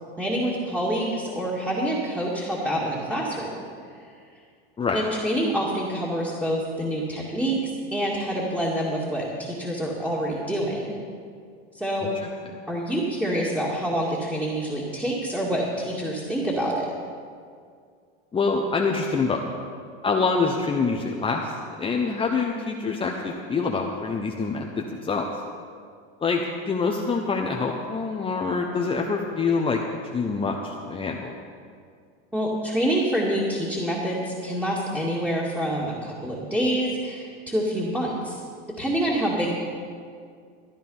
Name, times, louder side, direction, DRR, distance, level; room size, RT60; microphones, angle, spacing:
voice 1, 0.2-3.5 4.9-10.9 11.7-12.1 12.7-16.9 32.3-38.4 38.8-39.6, right 1 dB, 5° right, -6 dB, 2.2 m, -26 dB
voice 2, 18.3-19.4 20.0-21.5 21.8-25.3 26.2-29.8 30.1-31.3, left 4 dB, 15° left, 1 dB, 0.9 m, -25 dB
14.0 x 10.0 x 5.5 m, 2.2 s
supercardioid pair, 115°, 31 cm